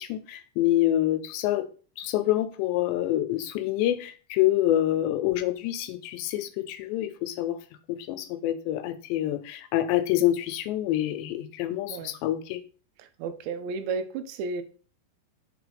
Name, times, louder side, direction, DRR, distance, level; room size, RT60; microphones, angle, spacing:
voice 1, 0.0-1.7 2.0-7.6 7.9-12.6, left 13 dB, 85° left, 10 dB, 2.9 m, -26 dB
voice 2, 13.0-14.6, right 4 dB, 90° right, 9 dB, 3.1 m, -33 dB
6.7 x 4.5 x 5.1 m, 0.39 s
omnidirectional pair, 5.0 m